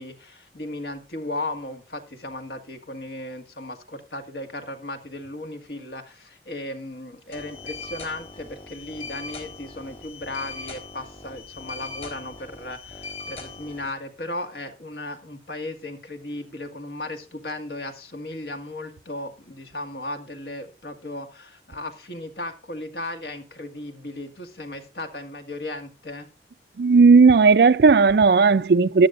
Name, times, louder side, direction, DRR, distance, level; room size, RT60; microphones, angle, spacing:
voice 1, 0.0-26.3, left 2 dB, 60° left, 2.0 m, -36 dB
sound 1, 7.3-13.9, left 4 dB, 35° left, 3.8 m, -39 dB
voice 2, 26.8-29.1, right 4 dB, 60° right, 0.4 m, -15 dB
13.5 x 11.0 x 2.5 m
head